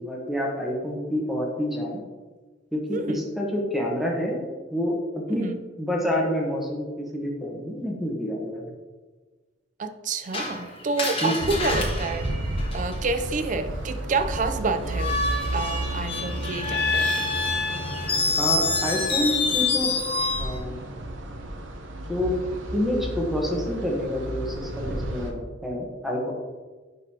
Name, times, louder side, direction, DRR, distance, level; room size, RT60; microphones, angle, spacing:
voice 1, 0.0-2.0 2.7-4.4 4.7-4.9 5.3-5.5 5.8-6.8 7.1-8.6 11.2-11.3 18.4-19.9 20.4-20.8 22.1-22.3 22.7-26.3, equal, ahead, -2 dB, 1.1 m, -28 dB
voice 2, 2.9-3.3 5.3-5.6 9.8-12.3 12.7-15.2 15.5-17.3, right 3 dB, 45° right, 8 dB, 0.5 m, -28 dB
Screech, 10.3-13.2 14.9-20.6, left 3 dB, 30° left, 1.2 m, -27 dB
sound 1, 11.4-25.3, right 1 dB, 85° right, 0.8 m, -33 dB
10.0 x 4.0 x 2.9 m, 1.4 s
head